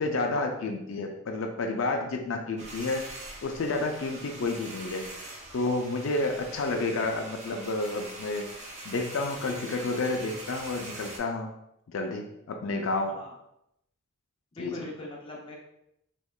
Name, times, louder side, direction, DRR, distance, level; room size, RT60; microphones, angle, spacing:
voice 1, 0.0-3.1 3.4-5.2 5.5-11.5 11.9-13.2 14.6-14.9, left 2 dB, 65° left, 3 dB, 0.4 m, -30 dB
sound 1, 2.6-11.2, right 2 dB, 30° right, 0.5 m, -43 dB
voice 2, 14.5-15.6, left 2 dB, 25° left, -2 dB, 0.6 m, -40 dB
3.5 x 3.0 x 2.3 m, 0.79 s
head